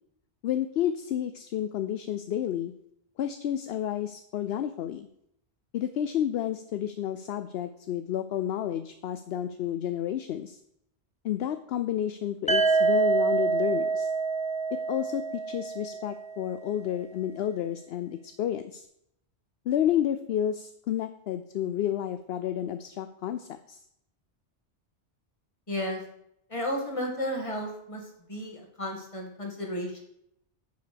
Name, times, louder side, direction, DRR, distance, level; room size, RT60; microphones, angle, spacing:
voice 1, 0.4-2.7 3.2-5.1 5.7-10.6 11.2-14.1 14.7-18.9 19.7-23.8, left 10 dB, 70° left, 10 dB, 0.8 m, -30 dB
sound 1, 12.5-16.4, right 4 dB, 10° left, 0.7 m, -26 dB
voice 2, 25.7-26.0 26.5-30.0, equal, 30° left, 0 dB, 2.2 m, -33 dB
10.0 x 5.7 x 6.8 m, 0.75 s
omnidirectional pair, 1.1 m